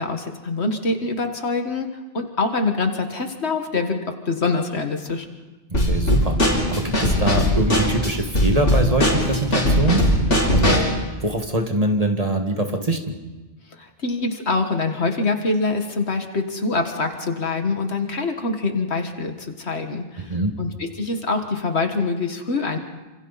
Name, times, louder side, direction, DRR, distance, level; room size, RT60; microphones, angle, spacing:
voice 1, 0.0-1.9 2.1-5.3 13.8-22.8, left 3 dB, 65° left, 5 dB, 1.9 m, -25 dB
Drum kit / Snare drum, 5.7-11.0, equal, 85° left, 4.4 m, -19 dB
voice 2, 5.7-6.4 6.7-10.1 10.5-10.8 11.2-13.1 20.2-20.5, right 1 dB, 30° right, 4 dB, 1.9 m, -23 dB
28.5 x 26.5 x 4.1 m, 1.2 s
omnidirectional pair, 1.2 m